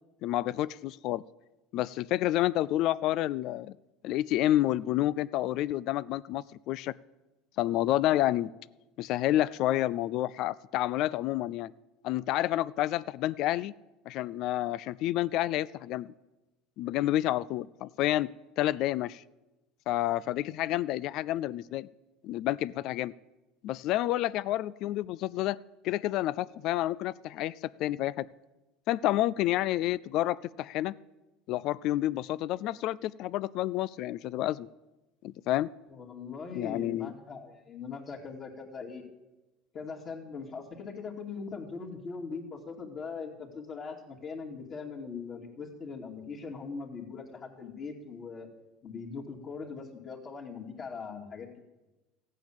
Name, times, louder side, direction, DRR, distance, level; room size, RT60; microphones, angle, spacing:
voice 1, 0.2-1.2 1.7-3.7 4.0-6.9 7.6-8.5 9.0-11.7 12.0-13.7 14.1-16.1 16.8-18.3 18.6-19.2 19.9-21.9 22.2-23.1 23.6-25.6 25.8-28.3 28.9-30.9 31.5-34.7 35.2-35.7 36.5-37.1, left 14 dB, 60° left, 19 dB, 0.4 m, -29 dB
voice 2, 35.9-39.0 39.7-48.5 48.8-51.6, left 5 dB, 40° left, -2 dB, 2.6 m, -41 dB
14.5 x 9.2 x 7.4 m, 1.0 s
supercardioid pair, 115°, 0 cm